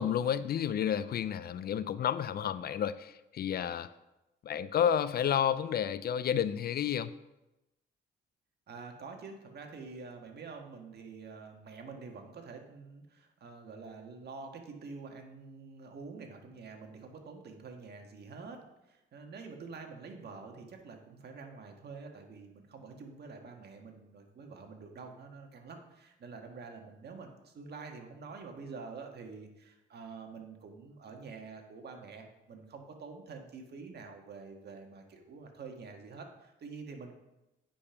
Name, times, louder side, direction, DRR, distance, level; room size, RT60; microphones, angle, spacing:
voice 1, 0.0-3.9 4.4-7.1, left 9 dB, 50° left, 15 dB, 0.4 m, -31 dB
voice 2, 8.7-18.6 18.9-37.1, right 4 dB, 55° right, 3 dB, 1.6 m, -47 dB
8.6 x 5.2 x 5.8 m, 0.96 s
cardioid pair, 90°, 20 cm